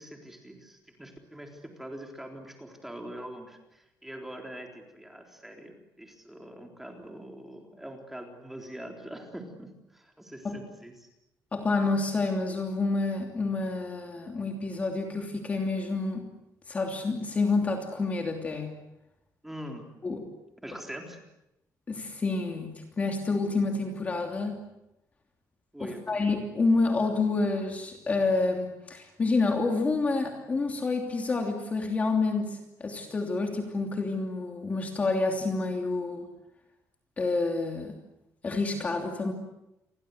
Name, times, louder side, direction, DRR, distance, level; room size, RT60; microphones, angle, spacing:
voice 1, 0.0-11.1 19.4-19.9 20.6-21.2 25.7-26.3, right 1 dB, 5° right, 2 dB, 3.8 m, -43 dB
voice 2, 11.5-16.3 16.7-18.7 20.0-20.3 21.9-24.7 25.8-36.3 37.2-38.0 38.4-39.3, left 3 dB, 25° left, 3 dB, 3.0 m, -28 dB
29.5 x 23.5 x 8.1 m, 0.89 s
cardioid pair, 180°, 6 cm